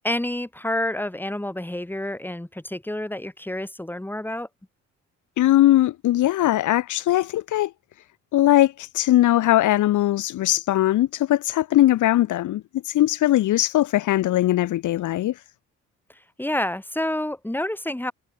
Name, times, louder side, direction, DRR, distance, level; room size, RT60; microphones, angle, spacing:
voice 1, 0.0-4.5 16.4-18.1, left 1 dB, 5° left, 6.0 m, -28 dB
voice 2, 5.4-7.7 8.3-15.4, left 14 dB, 80° left, 1.5 m, -20 dB
cardioid pair, 90°, 30 cm